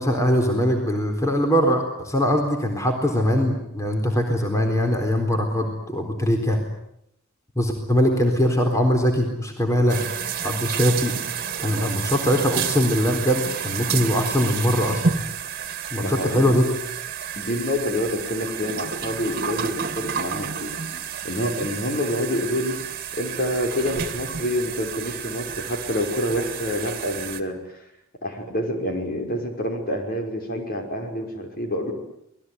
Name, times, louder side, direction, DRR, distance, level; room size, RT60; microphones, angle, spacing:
voice 1, 0.0-6.6 7.6-10.0 10.4-11.2 11.6-15.0 15.9-16.6, equal, 15° left, 3 dB, 4.0 m, -21 dB
sound 1, 9.9-27.4, right 7 dB, 45° right, 2.2 m, -30 dB
voice 2, 16.0-16.5 17.4-20.8 21.2-22.8 23.2-27.8 28.2-31.9, left 1 dB, 45° left, 3 dB, 5.7 m, -27 dB
27.5 x 20.0 x 9.6 m, 0.78 s
head